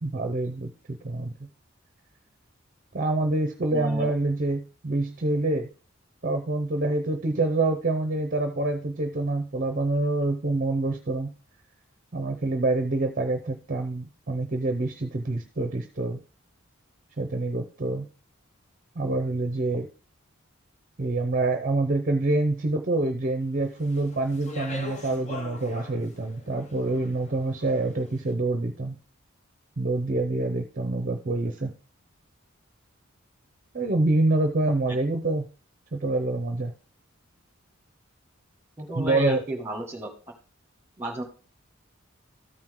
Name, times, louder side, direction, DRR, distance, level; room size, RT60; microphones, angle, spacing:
voice 1, 0.0-1.5 2.9-5.7 6.2-11.3 12.1-16.2 17.2-18.1 19.0-19.9 21.0-29.0 29.8-31.7 33.7-35.5 35.9-36.7 39.0-39.4, right 2 dB, 40° right, 6 dB, 0.7 m, -26 dB
voice 2, 3.7-4.1 38.8-40.1 41.0-41.2, right 1 dB, 10° right, 2 dB, 1.8 m, -32 dB
Speech, 23.8-28.1, left 3 dB, 35° left, 1.0 m, -41 dB
13.5 x 4.6 x 3.7 m, 0.36 s
head